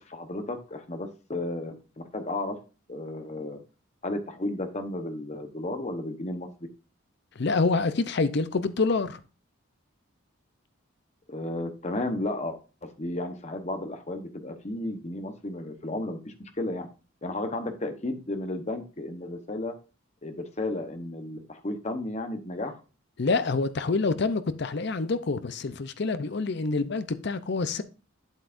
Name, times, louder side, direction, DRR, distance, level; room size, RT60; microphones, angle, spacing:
voice 1, 0.0-1.7 2.1-2.6 2.9-3.6 4.0-6.5 11.3-16.9 17.2-19.7 20.2-22.7, left 2 dB, 35° left, 1.0 m, -33 dB
voice 2, 7.4-9.2 23.2-27.8, left 3 dB, 55° left, 0.6 m, -27 dB
8.2 x 8.1 x 2.6 m
head